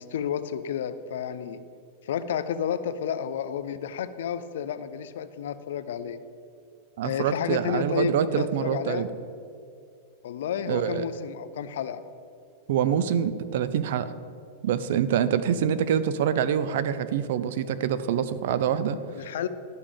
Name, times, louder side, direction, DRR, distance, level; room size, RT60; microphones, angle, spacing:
voice 1, 0.0-1.6 2.0-6.2 7.0-9.1 10.2-12.0 19.1-19.5, left 8 dB, 80° left, 13 dB, 0.5 m, -31 dB
voice 2, 7.0-9.1 10.7-11.1 12.7-14.1 14.6-19.0, right 9 dB, 70° right, 14 dB, 0.5 m, -25 dB
11.5 x 5.4 x 5.2 m, 2.3 s
supercardioid pair, 140°, 0 cm